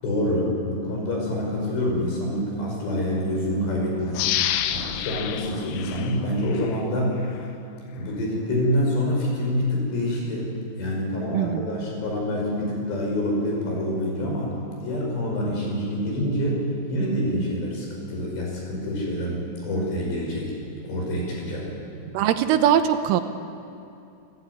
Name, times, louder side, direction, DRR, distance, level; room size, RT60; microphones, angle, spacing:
voice 1, 0.0-4.3 4.7-7.2 7.9-10.5 10.8-16.6 16.9-20.5 20.8-21.7, equal, 55° left, -2 dB, 7.9 m, -26 dB
sound 1, 4.1-6.8 7.3-7.4, left 11 dB, 85° left, 3.7 m, -28 dB
voice 2, 11.3-11.7 22.1-23.2, right 10 dB, 80° right, 8 dB, 3.4 m, -21 dB
28.0 x 16.0 x 9.6 m, 2.5 s
omnidirectional pair, 5.8 m